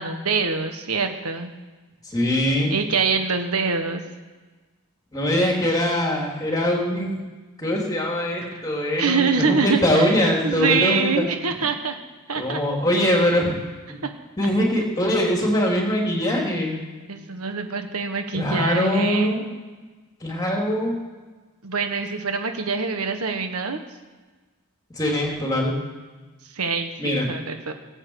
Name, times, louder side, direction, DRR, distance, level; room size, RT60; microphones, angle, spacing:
voice 1, 0.0-1.5 2.7-4.0 8.5-8.6 9.0-10.1 10.4-12.0 12.3-12.6 14.0-14.1 17.1-19.4 21.6-23.8 26.5-27.7, right 5 dB, 85° right, 6 dB, 1.5 m, -25 dB
voice 2, 2.0-2.7 5.1-7.2 7.6-11.2 12.3-13.6 13.9-14.0 14.4-16.8 18.3-19.4 20.2-21.0 25.0-25.7 27.0-27.3, left 1 dB, 15° left, -1 dB, 3.1 m, -22 dB
18.0 x 7.7 x 8.1 m, 1.3 s
head